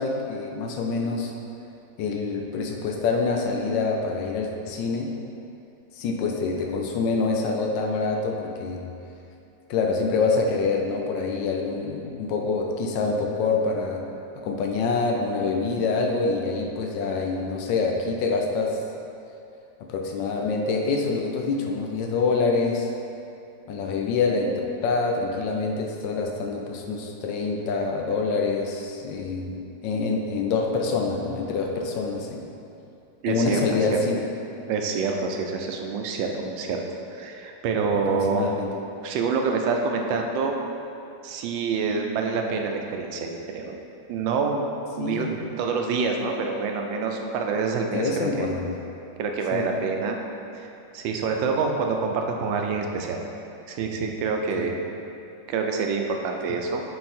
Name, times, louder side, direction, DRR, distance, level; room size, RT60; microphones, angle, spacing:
voice 1, 0.0-1.3 2.0-5.1 6.0-8.8 9.7-14.0 14.3-18.8 19.9-22.9 23.7-32.4 33.3-34.2 38.1-38.7 45.0-45.4 47.9-48.7 49.5-49.8 54.6-54.7, left 4 dB, 75° left, 1 dB, 1.3 m, -26 dB
voice 2, 33.2-33.7 33.9-34.0 34.7-36.8 37.1-38.5 39.0-40.6 41.2-43.8 44.1-44.7 45.0-48.5 49.2-50.2 50.6-50.7 50.9-53.2 53.7-54.7 55.5-56.8, right 4 dB, 85° right, 2 dB, 1.4 m, -26 dB
6.5 x 3.9 x 4.3 m, 2.7 s
omnidirectional pair, 2.0 m